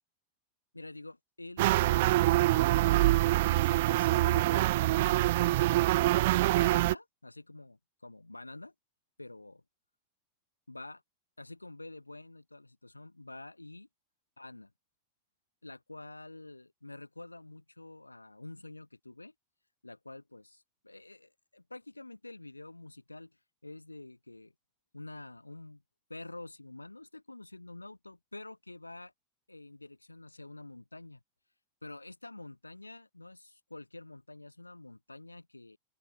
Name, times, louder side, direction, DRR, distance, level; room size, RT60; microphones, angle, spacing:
voice 1, 0.7-8.7 9.2-9.6 10.7-11.0 11.4-13.9 14.4-14.7 15.6-19.3 19.8-24.5 24.9-25.8 26.1-29.1 29.5-31.2 31.8-35.8, left 2 dB, 85° left, 7.3 m, -48 dB
sound 1, 1.6-6.9, right 18 dB, 55° right, 0.4 m, -25 dB
open air
figure-of-eight pair, 90°, 0 cm